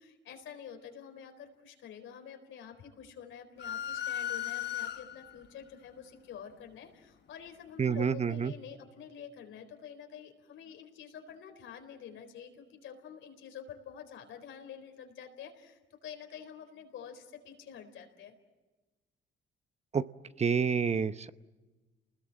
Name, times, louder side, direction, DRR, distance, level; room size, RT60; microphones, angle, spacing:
voice 1, 0.0-18.3, left 8 dB, 80° left, 5 dB, 4.2 m, -48 dB
sound 1, 3.6-5.4, left 11 dB, 60° left, 1.0 m, -36 dB
voice 2, 7.8-8.5 19.9-20.0 20.4-21.3, right 6 dB, 35° right, 13 dB, 0.8 m, -28 dB
29.5 x 20.5 x 7.7 m, 1.2 s
cardioid pair, 90°, 20 cm